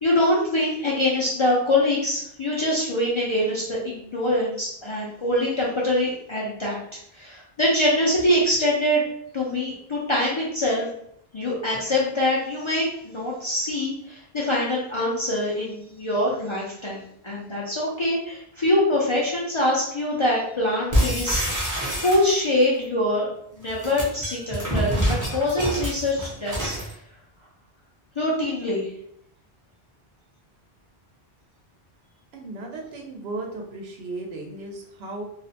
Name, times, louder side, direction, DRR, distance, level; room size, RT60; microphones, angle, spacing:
voice 1, 0.0-6.8 7.1-9.0 9.3-10.9 11.3-21.7 22.0-26.8 28.2-28.9, left 1 dB, 45° left, -5 dB, 0.4 m, -24 dB
sound 1, 20.9-22.6 23.6-26.9, equal, 20° right, 0.6 m, -26 dB
voice 2, 32.3-35.2, right 2 dB, 85° right, 1 dB, 0.9 m, -35 dB
2.4 x 2.1 x 2.7 m, 0.69 s
omnidirectional pair, 1.0 m